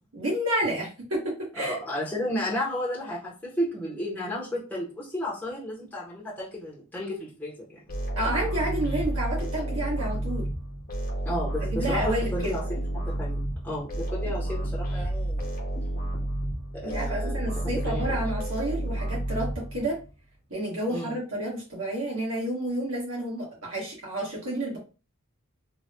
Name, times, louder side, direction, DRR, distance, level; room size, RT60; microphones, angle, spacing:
voice 1, 0.1-1.8 8.1-10.5 11.6-12.5 16.8-20.0 20.5-24.8, right 1 dB, 70° right, -4 dB, 1.6 m, -30 dB
voice 2, 1.6-7.8 11.3-12.6 12.9-15.5 16.7-17.5 17.9-18.2 20.9-21.1, equal, 5° left, -6 dB, 0.7 m, -33 dB
sound 1, 7.9-20.1, right 1 dB, 40° left, 0.8 m, -30 dB
3.2 x 2.2 x 2.7 m, 0.33 s
head